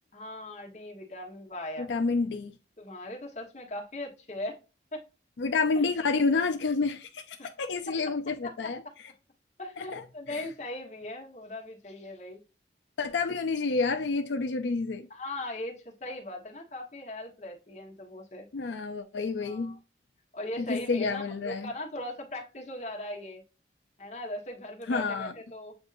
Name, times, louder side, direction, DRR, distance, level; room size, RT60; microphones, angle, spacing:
voice 1, 0.1-1.9 2.8-4.6 4.9-5.0 5.7-5.9 7.4-7.5 7.9-8.0 8.4-8.7 9.6-12.4 15.1-18.5 19.4-19.7 20.3-23.4 24.0-25.8, left 1 dB, 40° left, 1.2 m, -39 dB
voice 2, 1.8-2.6 5.4-8.8 9.8-10.0 10.3-10.5 13.0-15.1 18.5-19.8 20.6-21.7 24.9-25.3, left 4 dB, 85° left, 0.5 m, -29 dB
7.8 x 2.6 x 2.5 m
head